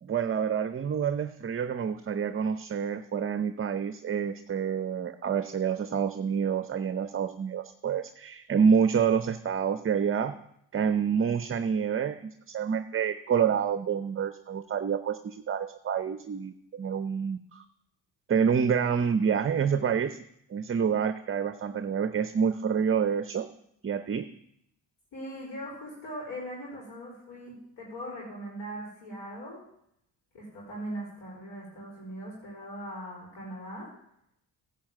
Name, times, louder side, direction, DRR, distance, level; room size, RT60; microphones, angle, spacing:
voice 1, 0.0-10.3 10.7-17.7 18.3-20.2 20.5-23.5 23.8-24.3, right 7 dB, 30° right, 10 dB, 0.6 m, -28 dB
voice 2, 25.1-29.6 30.3-33.9, equal, 80° left, -5 dB, 4.1 m, -40 dB
10.5 x 5.2 x 7.5 m, 0.74 s
cardioid pair, 70°, 42 cm